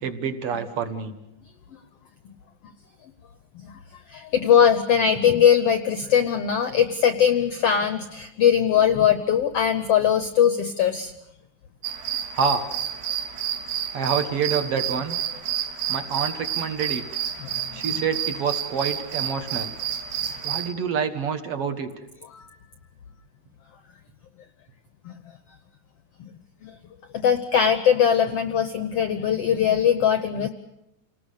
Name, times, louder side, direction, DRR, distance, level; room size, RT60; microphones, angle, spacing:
voice 1, 0.0-1.2 12.3-12.7 13.9-15.2 15.9-17.0 17.7-19.7 20.4-21.9, right 6 dB, 50° right, 8 dB, 2.1 m, -27 dB
voice 2, 4.1-11.1 17.7-17.8 22.3-22.4 25.0-25.1 26.2-26.3 26.6-26.7 27.1-30.5, left 8 dB, 75° left, 9 dB, 1.4 m, -20 dB
sound 1, 11.8-20.7, right 9 dB, 90° right, 3.4 m, -30 dB
29.0 x 19.0 x 6.6 m, 0.87 s
omnidirectional pair, 4.0 m